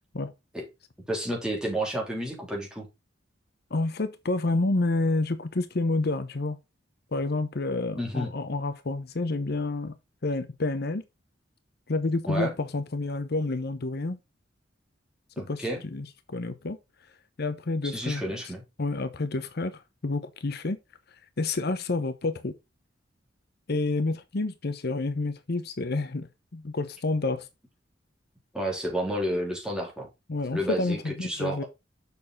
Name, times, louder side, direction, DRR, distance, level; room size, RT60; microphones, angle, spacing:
voice 1, 1.1-2.9 7.9-8.3 12.3-12.5 15.4-15.8 17.8-18.6 28.5-30.1 30.5-31.7, right 1 dB, 5° right, 3.4 m, -30 dB
voice 2, 3.7-6.6 7.1-9.9 10.2-11.0 11.9-14.2 15.5-16.8 17.4-18.2 18.8-20.8 21.4-22.5 23.7-26.3 26.5-27.5 30.3-31.6, left 2 dB, 55° left, 0.8 m, -29 dB
6.9 x 6.6 x 3.9 m
head